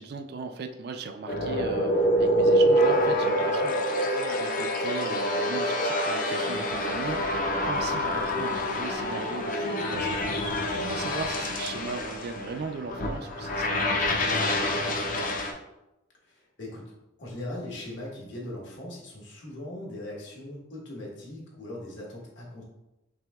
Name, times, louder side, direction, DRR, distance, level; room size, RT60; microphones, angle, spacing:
voice 1, 0.0-15.3, right 4 dB, 55° right, 7 dB, 0.3 m, -38 dB
sound 1, 1.3-15.5, equal, 40° left, 0.5 m, -26 dB
voice 2, 16.3-16.9 17.2-22.6, left 1 dB, 65° left, -3 dB, 1.4 m, -39 dB
5.9 x 2.8 x 2.3 m, 0.92 s
head